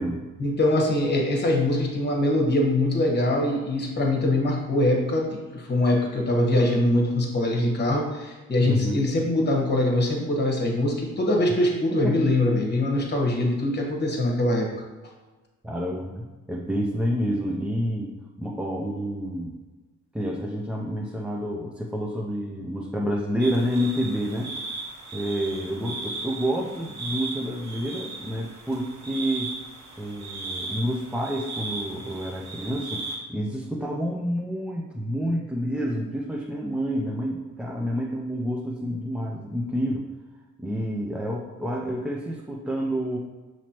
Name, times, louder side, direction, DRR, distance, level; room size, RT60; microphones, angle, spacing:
voice 1, 0.4-14.7, left 1 dB, 35° left, 0 dB, 1.2 m, -23 dB
voice 2, 8.7-9.0 11.9-12.2 15.6-18.1 18.4-19.6 20.1-24.8 25.1-29.5 30.0-33.0 33.3-40.1 40.6-43.2, equal, 5° right, -2 dB, 0.5 m, -29 dB
sound 1, 23.4-33.2, right 2 dB, 65° right, 1.1 m, -37 dB
5.9 x 3.1 x 2.9 m, 1.3 s
cardioid pair, 90°, 30 cm